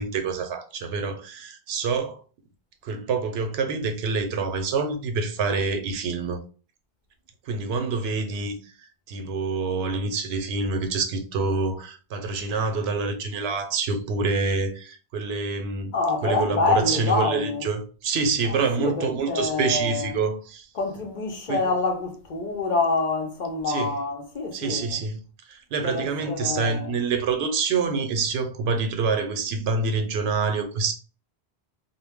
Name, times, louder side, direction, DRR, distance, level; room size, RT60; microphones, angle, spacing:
voice 1, 0.0-2.2 2.8-6.4 7.5-8.7 9.1-15.9 16.2-20.7 21.5-21.6 23.7-23.9 24.5-25.2 25.5-30.9, right 4 dB, 85° right, 0.8 m, -26 dB
voice 2, 15.9-17.6 18.5-20.1 20.7-25.0 25.8-26.9, left 3 dB, 55° left, 0.6 m, -26 dB
2.2 x 2.1 x 3.3 m
omnidirectional pair, 1.0 m